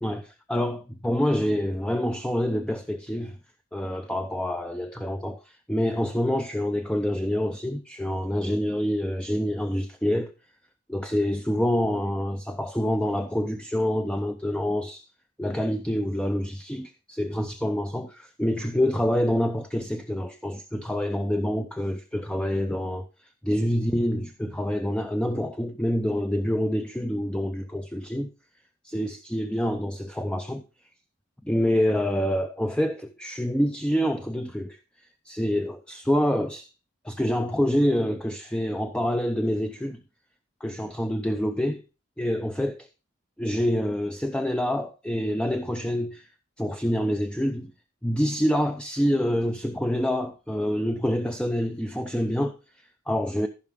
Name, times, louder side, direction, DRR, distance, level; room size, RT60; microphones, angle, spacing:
voice 1, 0.0-3.4 3.7-10.3 10.9-15.0 15.4-23.1 23.4-28.3 28.8-30.6 31.4-34.8 35.3-36.7 37.0-40.0 40.6-41.8 42.2-42.9 43.4-46.3 46.6-47.7 48.0-53.5, equal, 5° left, 0.5 m, -26 dB
14.5 x 5.6 x 3.7 m
head